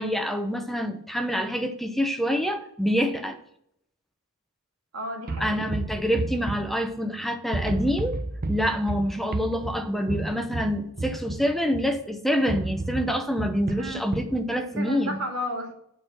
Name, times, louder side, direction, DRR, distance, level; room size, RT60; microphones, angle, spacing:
voice 1, 0.0-3.4 5.4-8.2 8.5-15.2, equal, ahead, 6 dB, 0.7 m, -26 dB
voice 2, 4.9-5.7 13.8-14.0 14.6-15.7, equal, 90° right, 0 dB, 2.6 m, -33 dB
sound 1, 5.3-7.2 7.5-12.0 12.5-14.4, right 2 dB, 40° right, 0.8 m, -32 dB
8.6 x 4.6 x 7.4 m, 0.71 s
head